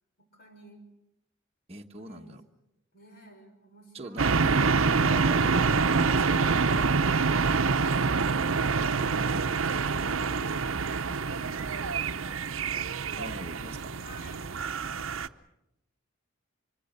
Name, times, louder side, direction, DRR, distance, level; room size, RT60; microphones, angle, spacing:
voice 1, 0.2-0.8 1.9-2.4 2.9-4.5 14.0-14.6, right 1 dB, 50° left, 4 dB, 5.7 m, -53 dB
voice 2, 1.7-2.4 3.9-4.3 5.0-6.6 13.2-13.9, right 1 dB, 30° right, 0 dB, 1.2 m, -42 dB
sound 1, 4.2-15.3, right 4 dB, 80° right, 0.8 m, -26 dB
25.5 x 24.5 x 6.7 m, 0.86 s
head